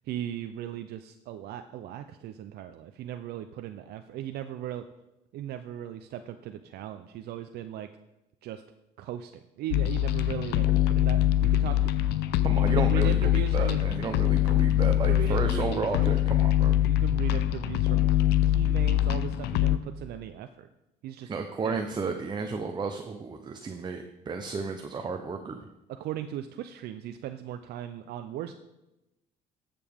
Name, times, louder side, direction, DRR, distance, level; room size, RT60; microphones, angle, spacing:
voice 1, 0.1-4.9 5.3-7.9 8.4-8.6 9.0-9.3 9.6-11.9 12.7-13.8 15.1-16.2 16.9-20.7 21.0-21.3 21.6-21.8 25.9-28.5, right 11 dB, 70° right, 8 dB, 0.5 m, -38 dB
sound 1, 9.7-19.8, left 13 dB, 80° left, 0.5 m, -24 dB
voice 2, 12.4-16.9 21.2-25.7, right 4 dB, 25° right, 5 dB, 0.6 m, -33 dB
13.0 x 6.8 x 3.5 m, 0.95 s
cardioid pair, 110°, 17 cm